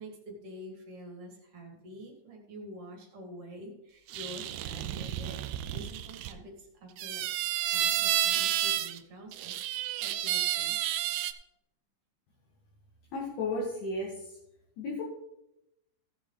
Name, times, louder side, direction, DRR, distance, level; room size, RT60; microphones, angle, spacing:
voice 1, 0.0-7.2 7.7-10.8, equal, 50° right, 1 dB, 2.6 m, -47 dB
sound 1, 4.1-6.3 7.0-9.0 9.3-11.3, right 12 dB, 80° right, 1.6 m, -31 dB
voice 2, 13.1-14.4 14.8-15.0, left 2 dB, 65° left, -3 dB, 3.2 m, -34 dB
15.5 x 6.9 x 3.9 m, 0.84 s
omnidirectional pair, 3.8 m